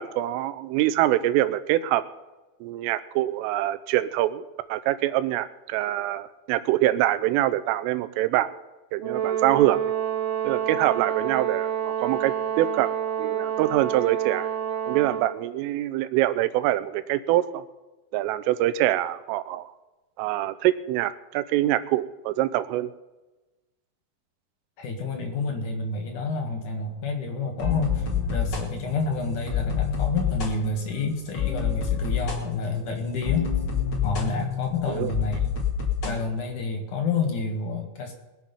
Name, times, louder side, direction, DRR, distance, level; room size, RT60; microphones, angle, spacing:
voice 1, 0.0-2.0 2.6-4.4 4.7-8.5 8.9-9.8 10.4-12.9 13.2-14.5 14.9-17.6 18.1-19.7 20.2-22.9 34.9-35.1, right 14 dB, 90° right, 13 dB, 3.3 m, -24 dB
Brass instrument, 9.0-15.4, right 9 dB, 70° right, 1.2 m, -28 dB
voice 2, 24.8-33.4 34.0-35.5 36.0-38.1, left 4 dB, 55° left, 2 dB, 2.4 m, -29 dB
sound 1, 27.6-36.2, left 7 dB, 70° left, 1.0 m, -28 dB
21.0 x 7.5 x 5.5 m, 1.1 s
omnidirectional pair, 5.7 m